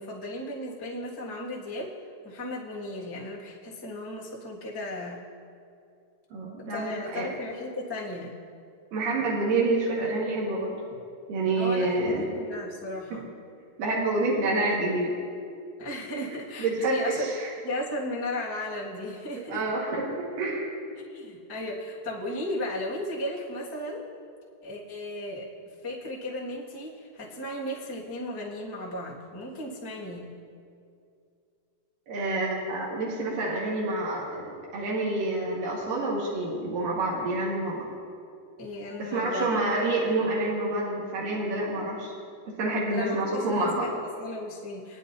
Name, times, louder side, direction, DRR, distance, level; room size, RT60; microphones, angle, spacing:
voice 1, 0.0-1.9 2.2-5.2 6.7-8.3 11.6-13.3 15.8-17.3 17.6-19.6 21.1-24.0 24.6-30.4 38.6-39.5 42.9-45.0, left 1 dB, 20° left, -5 dB, 0.6 m, -35 dB
voice 2, 6.3-7.3 8.9-10.8 11.3-12.2 13.8-15.1 16.1-17.5 19.4-20.7 32.1-37.9 39.0-42.1 42.6-43.9, right 2 dB, 80° right, -5 dB, 3.3 m, -28 dB
23.0 x 10.0 x 2.7 m, 2.4 s
omnidirectional pair, 3.8 m